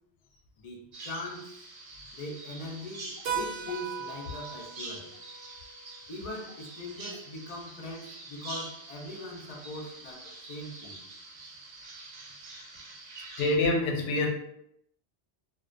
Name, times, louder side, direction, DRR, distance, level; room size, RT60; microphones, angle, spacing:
voice 1, 0.6-1.7 2.1-5.1 6.1-11.0, left 2 dB, 50° left, -1 dB, 0.5 m, -41 dB
Bird vocalization bird call bird song, 0.9-13.6, right 3 dB, 55° right, 0.5 m, -46 dB
Keyboard (musical), 3.3-7.7, right 6 dB, 75° right, 0.9 m, -40 dB
voice 2, 13.4-14.3, left 2 dB, 90° left, 1 dB, 0.9 m, -25 dB
2.4 x 2.2 x 2.4 m, 0.73 s
omnidirectional pair, 1.2 m